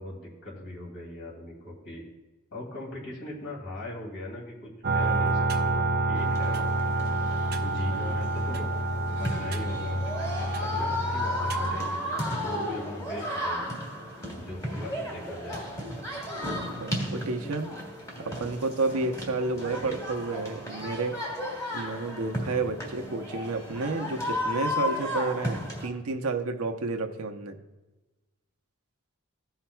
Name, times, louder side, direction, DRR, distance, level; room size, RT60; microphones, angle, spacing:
voice 1, 0.0-2.0 2.5-6.6 7.6-8.7 9.2-10.0 10.3-13.7 14.3-15.8, left 1 dB, 55° left, -3 dB, 2.5 m, -39 dB
sound 1, 4.8-11.8, right 2 dB, 45° right, 0.6 m, -28 dB
sound 2, 6.1-25.9, left 1 dB, 15° left, 1.4 m, -34 dB
voice 2, 16.8-17.7 18.2-21.2 21.7-27.6, right 3 dB, 80° right, 5 dB, 0.7 m, -31 dB
15.5 x 5.8 x 2.2 m, 1.1 s
head